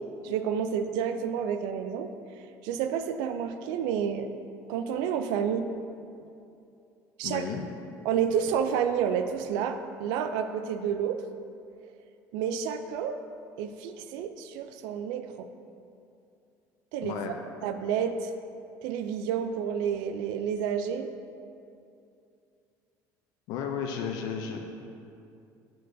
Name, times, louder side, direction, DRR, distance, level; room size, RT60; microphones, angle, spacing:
voice 1, 0.0-2.1 2.6-4.3 4.7-5.7 7.2-7.5 8.0-11.2 12.3-13.2 13.6-15.5 16.9-17.3 17.6-18.3 18.8-21.1, right 8 dB, 85° right, 8 dB, 0.3 m, -30 dB
voice 2, 7.2-7.6 17.0-17.3 23.5-24.6, left 7 dB, 70° left, 3 dB, 0.5 m, -33 dB
11.0 x 4.6 x 2.6 m, 2.6 s
cardioid pair, 125°, 7 cm